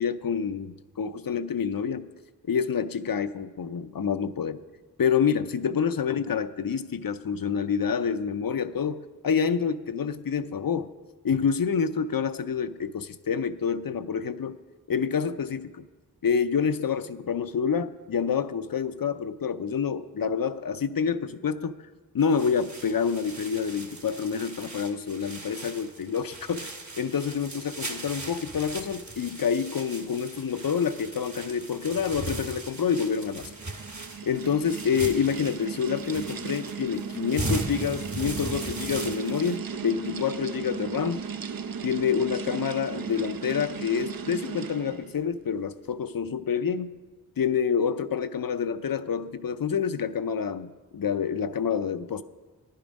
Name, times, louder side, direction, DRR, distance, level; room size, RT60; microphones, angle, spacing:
voice 1, 0.0-2.1 2.5-4.6 5.0-10.9 11.2-14.6 14.9-15.9 16.2-21.8 22.1-26.7 27.0-33.5 34.2-41.2 41.8-47.0 47.4-52.2, left 6 dB, 65° left, 12 dB, 0.5 m, -27 dB
sound 1, 22.2-39.6, right 2 dB, 50° right, 1.3 m, -38 dB
sound 2, 33.0-45.1, right 6 dB, 65° right, 0.5 m, -36 dB
10.5 x 10.5 x 5.2 m, 1.3 s
wide cardioid pair, 55°, 37 cm